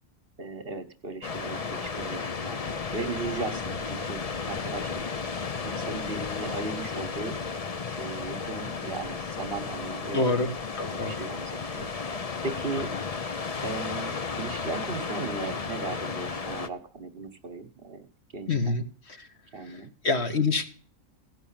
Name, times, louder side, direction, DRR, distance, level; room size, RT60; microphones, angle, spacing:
voice 1, 0.4-4.2 4.5-5.0 5.6-7.4 8.0-10.4 10.9-11.9 12.4-12.9 13.6-18.1 18.3-18.8 19.5-19.9, right 3 dB, 45° right, 7 dB, 1.3 m, -36 dB
sound 1, 1.2-16.7, left 5 dB, 35° left, 0.7 m, -34 dB
voice 2, 10.1-11.3 18.5-19.3 19.7-19.8 20.0-20.7, left 3 dB, 55° left, 5 dB, 1.6 m, -27 dB
16.0 x 5.8 x 8.8 m, 0.43 s
omnidirectional pair, 1.4 m